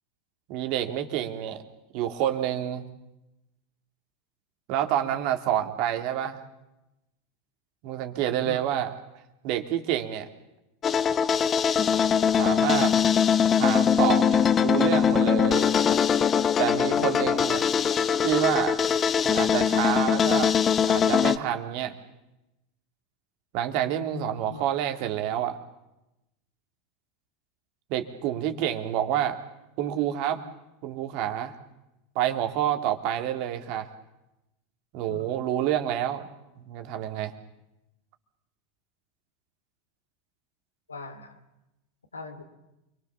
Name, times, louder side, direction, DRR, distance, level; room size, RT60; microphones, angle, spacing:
voice 1, 0.5-1.6 1.9-2.9 4.7-6.4 7.8-8.9 9.4-10.3 12.4-12.9 13.5-15.7 16.6-17.6 18.2-18.8 19.2-20.5 20.9-21.9 23.5-25.6 27.9-29.4 29.8-30.4 30.8-31.5 32.1-33.9 34.9-36.2 36.6-37.3, right 11 dB, 55° right, 6 dB, 3.1 m, -28 dB
sound 1, 10.8-21.4, left 7 dB, 30° left, 1.2 m, -22 dB
voice 2, 40.9-41.4 42.1-42.4, left 4 dB, 90° left, 8 dB, 2.8 m, -40 dB
28.5 x 23.5 x 7.3 m, 0.93 s
hypercardioid pair, 85°, 0 cm